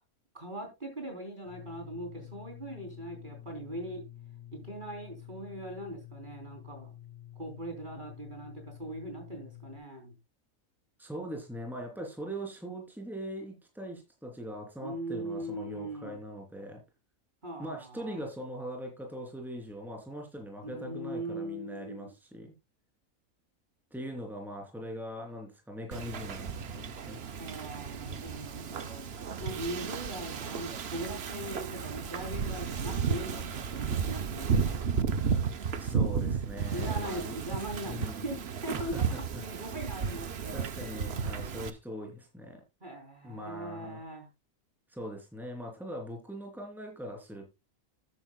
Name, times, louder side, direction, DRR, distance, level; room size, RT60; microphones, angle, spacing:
voice 1, 0.3-4.0 4.5-6.9 7.4-10.1 14.8-16.2 17.4-18.2 20.6-22.1 27.4-29.1 29.4-34.9 36.7-39.0 39.4-40.6 42.8-44.3, right 1 dB, 30° right, 3 dB, 3.8 m, -40 dB
sound 1, 1.5-9.8, left 12 dB, 80° left, 3.7 m, -49 dB
voice 2, 11.0-16.8 17.6-22.5 23.9-27.2 35.8-37.3 37.8-38.2 38.7-39.4 40.5-42.6 43.2-44.0 44.9-47.5, equal, ahead, 2 dB, 3.3 m, -41 dB
Wind / Ocean, 25.9-41.7, right 6 dB, 50° right, 1.0 m, -33 dB
13.5 x 9.8 x 2.3 m, 0.24 s
omnidirectional pair, 1.5 m